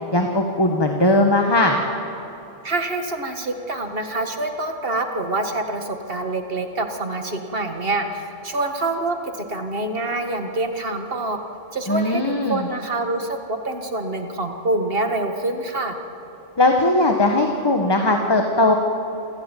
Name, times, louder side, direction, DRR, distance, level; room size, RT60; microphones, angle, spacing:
voice 1, 0.1-1.8 11.9-12.7 16.6-18.8, left 2 dB, 20° left, 3 dB, 1.4 m, -19 dB
voice 2, 2.6-11.4 11.7-16.0, right 2 dB, 50° right, 5 dB, 2.0 m, -26 dB
28.5 x 15.5 x 9.2 m, 2.9 s
omnidirectional pair, 1.3 m